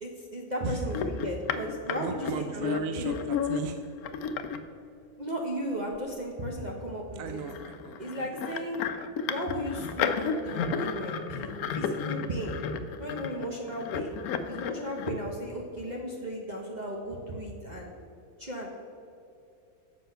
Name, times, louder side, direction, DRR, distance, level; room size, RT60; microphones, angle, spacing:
voice 1, 0.0-3.2 5.2-7.4 8.0-8.8 9.2-12.6 13.0-17.9 18.4-18.7, equal, 35° right, -1 dB, 0.9 m, -35 dB
sound 1, 0.9-4.6 5.9-6.0 6.4-6.5 7.3-15.1, left 6 dB, 85° left, 1.1 m, -33 dB
voice 2, 2.0-3.9 7.2-8.3, right 6 dB, 75° right, 8 dB, 0.9 m, -37 dB
7.8 x 6.3 x 5.6 m, 2.7 s
omnidirectional pair, 1.5 m